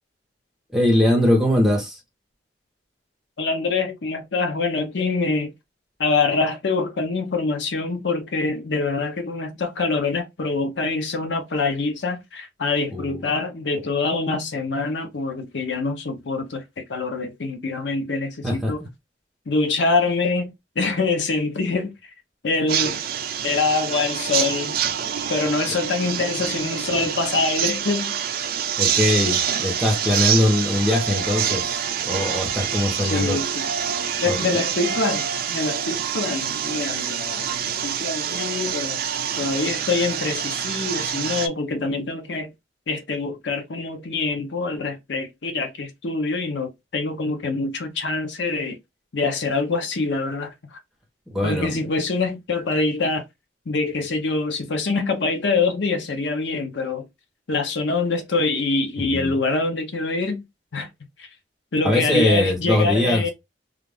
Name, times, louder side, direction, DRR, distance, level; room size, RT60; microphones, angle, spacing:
voice 1, 0.7-2.0 12.9-13.3 18.4-18.7 25.7-25.8 28.8-31.7 32.0-33.4 34.2-34.4 51.3-51.8 59.0-59.4 61.8-63.2, left 1 dB, 5° right, 1.0 m, -21 dB
voice 2, 3.4-5.5 6.0-18.8 19.5-21.9 22.4-23.0 23.4-24.8 25.3-28.1 33.0-33.7 34.2-39.0 39.4-42.5 42.9-48.8 49.1-50.8 51.4-53.2 53.7-57.1 57.5-60.4 60.7-60.9 61.2-61.3 61.7-63.3, left 3 dB, 75° left, 0.7 m, -25 dB
sound 1, 22.7-41.5, right 8 dB, 55° right, 0.4 m, -26 dB
2.5 x 2.4 x 3.3 m
head